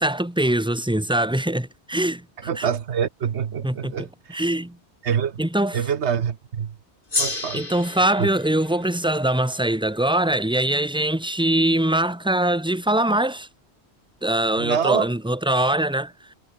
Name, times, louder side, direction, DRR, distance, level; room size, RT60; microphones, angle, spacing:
voice 1, 0.0-2.7 3.6-4.8 5.4-5.8 7.3-13.5 14.2-16.3, right 1 dB, 5° right, 2.0 m, -23 dB
voice 2, 2.5-4.4 5.0-5.4 5.7-6.7 7.2-7.6 8.2-8.3 14.6-15.1, right 7 dB, 80° right, 1.3 m, -25 dB
Gong, 7.1-11.8, left 2 dB, 50° left, 3.6 m, -33 dB
omnidirectional pair, 1.1 m